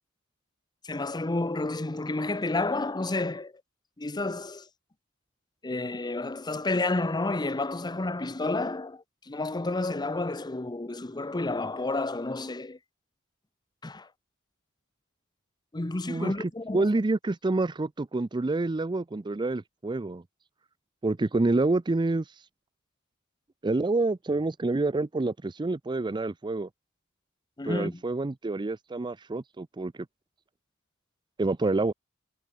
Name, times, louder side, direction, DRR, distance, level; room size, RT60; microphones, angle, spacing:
voice 1, 0.8-3.5 4.0-4.7 5.6-12.8 13.8-14.1 15.7-16.9 27.6-28.0, left 2 dB, 20° left, 0.8 m, -30 dB
voice 2, 16.1-20.2 21.0-22.2 23.6-26.7 27.6-29.9 31.4-31.9, right 2 dB, 20° right, 0.5 m, -27 dB
head